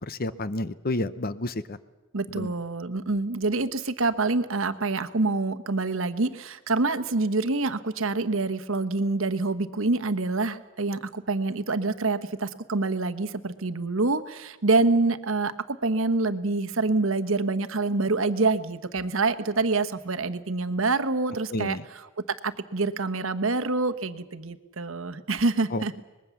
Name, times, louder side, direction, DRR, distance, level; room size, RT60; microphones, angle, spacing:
voice 1, 0.0-1.8 2.3-2.5 21.5-21.8 25.7-26.0, left 2 dB, 45° left, 14 dB, 0.8 m, -30 dB
voice 2, 2.1-21.8 22.4-25.9, right 3 dB, 65° right, 10 dB, 1.1 m, -26 dB
24.0 x 21.0 x 7.1 m, 1.2 s
head